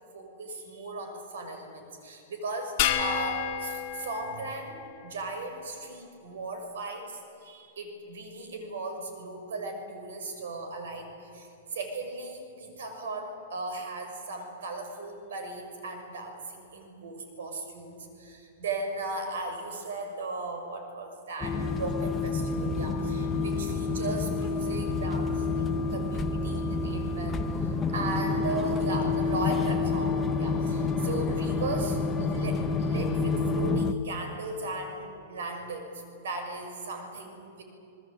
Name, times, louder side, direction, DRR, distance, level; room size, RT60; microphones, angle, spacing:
voice 1, 0.1-37.6, right 2 dB, 85° right, 5 dB, 6.2 m, -37 dB
sound 1, 2.8-5.4, left 9 dB, 35° left, 2.0 m, -31 dB
sound 2, 21.4-33.9, left 4 dB, 10° left, 0.8 m, -28 dB
29.5 x 20.0 x 8.8 m, 2.8 s
supercardioid pair, 175°, 0 cm